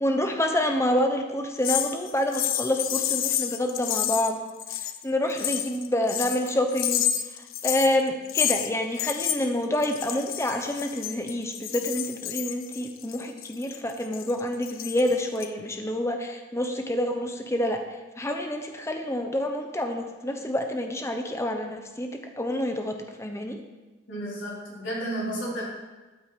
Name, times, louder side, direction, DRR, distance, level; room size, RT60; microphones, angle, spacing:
voice 1, 0.0-4.4 4.8-7.1 7.6-17.8 18.2-22.1 22.4-23.6, left 1 dB, 15° left, 4 dB, 0.9 m, -27 dB
sound 1, 1.6-5.0 5.3-8.7 9.0-15.5, left 11 dB, 85° left, 0.7 m, -30 dB
voice 2, 24.1-25.6, right 1 dB, 65° left, -6 dB, 4.4 m, -32 dB
13.0 x 8.6 x 5.1 m, 1.2 s
head